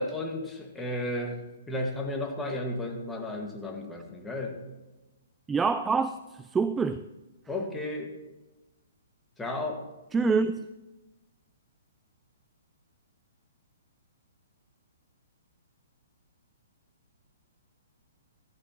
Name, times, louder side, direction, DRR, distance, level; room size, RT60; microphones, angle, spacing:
voice 1, 0.0-1.4 1.7-4.6 7.5-8.1 9.4-9.9, left 1 dB, 10° left, 1.7 m, -33 dB
voice 2, 5.5-7.0 10.1-10.6, right 4 dB, 10° right, 0.3 m, -26 dB
15.0 x 13.0 x 3.0 m
figure-of-eight pair, 125°, 0 cm